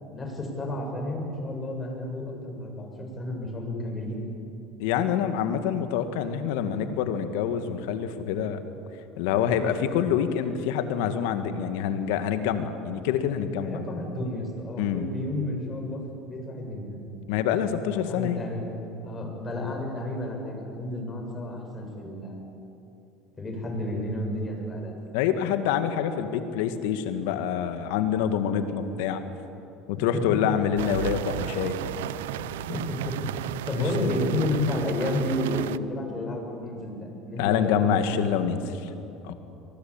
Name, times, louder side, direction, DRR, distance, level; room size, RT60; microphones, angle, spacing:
voice 1, 0.1-4.2 13.6-17.0 17.9-18.7 19.0-22.5 23.4-24.9 30.1-30.4 32.4-33.3 33.7-38.5, left 1 dB, 25° left, 1 dB, 7.4 m, -31 dB
voice 2, 4.8-8.6 9.2-13.8 14.8-15.1 17.3-18.4 25.1-29.2 29.9-32.1 33.8-34.2 37.4-38.9 39.2-39.3, left 8 dB, 75° left, 9 dB, 1.8 m, -26 dB
sound 1, 30.8-35.8, right 13 dB, 85° right, 0.5 m, -34 dB
23.5 x 19.0 x 8.9 m, 2.8 s
supercardioid pair, 90°, 0 cm